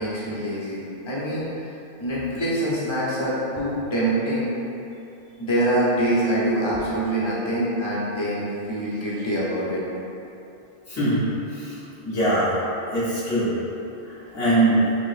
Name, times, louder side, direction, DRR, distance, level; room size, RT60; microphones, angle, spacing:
voice 1, 0.0-1.5 2.0-4.5 5.4-9.8, right 1 dB, 25° left, -8 dB, 0.8 m, -25 dB
voice 2, 10.9-11.2 11.5-11.7 12.0-12.5 12.9-13.5 14.3-14.8, right 1 dB, 75° left, -13 dB, 1.7 m, -21 dB
4.6 x 2.9 x 2.5 m, 2.8 s
omnidirectional pair, 1.3 m